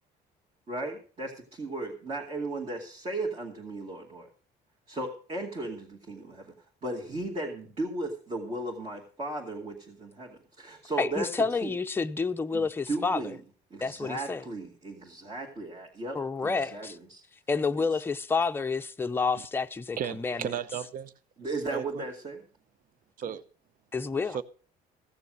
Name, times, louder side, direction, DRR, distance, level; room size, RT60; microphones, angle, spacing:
voice 1, 0.7-4.3 4.9-6.5 6.8-11.3 11.6-11.7 12.5-13.4 13.7-17.2 17.8-17.9 21.4-22.4, right 2 dB, 35° right, 2.3 m, -36 dB
voice 2, 11.0-13.3 13.8-14.4 16.1-17.0 17.5-20.5 23.9-24.4, left 4 dB, 15° left, 0.5 m, -29 dB
voice 3, 20.0-21.1 21.7-22.1 23.2-23.4 24.3-24.4, right 8 dB, 55° right, 0.7 m, -34 dB
15.5 x 6.9 x 6.3 m
cardioid pair, 110°, 17 cm